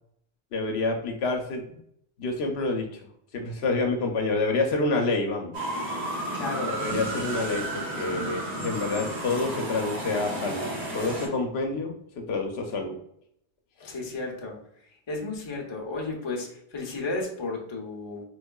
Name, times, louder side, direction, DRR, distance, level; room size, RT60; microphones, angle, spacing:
voice 1, 0.5-1.8 2.2-3.0 3.3-5.5 6.7-10.7 10.9-12.9 13.8-14.0, left 3 dB, 70° left, 3 dB, 0.8 m, -28 dB
sound 1, 5.5-11.3, right 1 dB, 75° right, 1.2 m, -32 dB
voice 2, 6.3-6.8 13.8-14.6 15.1-18.2, left 3 dB, 30° left, 0 dB, 0.6 m, -33 dB
3.6 x 3.1 x 2.2 m, 0.72 s
omnidirectional pair, 1.1 m